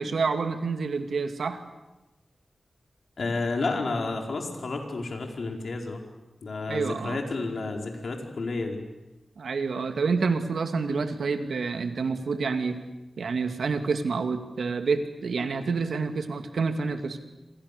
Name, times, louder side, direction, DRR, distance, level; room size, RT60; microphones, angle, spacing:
voice 1, 0.0-1.6 6.7-7.2 9.4-12.8 13.2-17.2, right 4 dB, 85° right, 7 dB, 2.4 m, -28 dB
voice 2, 3.2-6.0 6.4-8.8, left 3 dB, 70° left, 2 dB, 4.6 m, -31 dB
27.0 x 27.0 x 6.8 m, 1.0 s
wide cardioid pair, 85°, 0 cm